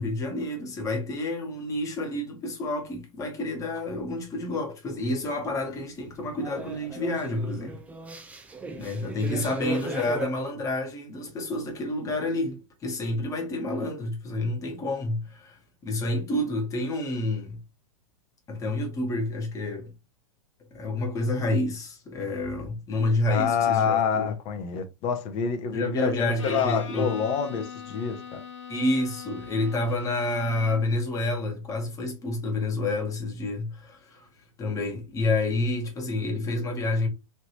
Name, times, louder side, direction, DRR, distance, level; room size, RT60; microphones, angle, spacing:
voice 1, 0.0-7.8 8.7-17.6 18.5-19.9 20.7-24.3 25.7-27.1 28.7-34.3 34.6-37.1, left 2 dB, 20° left, 1.1 m, -29 dB
sound 1, 6.1-10.3, right 4 dB, 10° right, 0.4 m, -37 dB
voice 2, 23.3-28.4, left 6 dB, 35° left, 0.7 m, -27 dB
Bowed string instrument, 26.4-31.1, left 7 dB, 65° left, 0.9 m, -41 dB
3.2 x 2.8 x 2.8 m
figure-of-eight pair, 100°, 17 cm